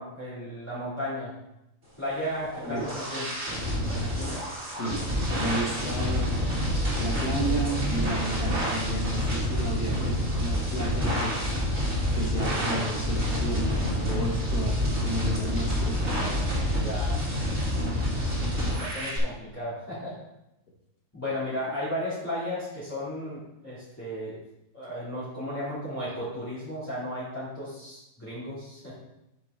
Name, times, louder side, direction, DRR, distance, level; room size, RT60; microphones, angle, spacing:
voice 1, 0.0-1.3 2.0-3.6 3.9-4.4 16.8-17.2 18.4-20.2 21.1-24.4 24.7-29.0, left 1 dB, 10° left, -12 dB, 2.6 m, -35 dB
sound 1, 2.2-19.2, left 1 dB, 45° right, 2.6 m, -28 dB
voice 2, 4.7-5.0 5.4-6.3 7.0-11.5 12.1-16.4, right 1 dB, 65° left, -1 dB, 2.2 m, -32 dB
8.5 x 6.5 x 3.7 m, 0.87 s
omnidirectional pair, 1.7 m